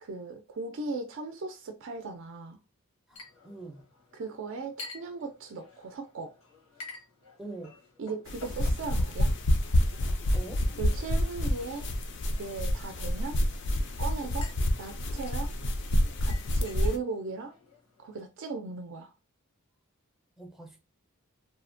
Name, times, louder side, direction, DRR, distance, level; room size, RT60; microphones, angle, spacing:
voice 1, 0.0-2.6 4.1-6.4 8.0-9.4 10.8-11.9 12.4-13.4 14.0-14.5 14.8-15.5 16.2-17.5 18.0-19.1, right 4 dB, 60° right, 0.4 m, -37 dB
Chink clink, 3.1-18.2, left 3 dB, 90° left, 1.1 m, -51 dB
voice 2, 3.1-3.9 7.4-7.8 10.3-10.7 20.4-20.8, right 2 dB, ahead, 0.5 m, -44 dB
sound 1, 8.3-17.0, equal, 55° left, 0.4 m, -28 dB
2.7 x 2.1 x 2.5 m
head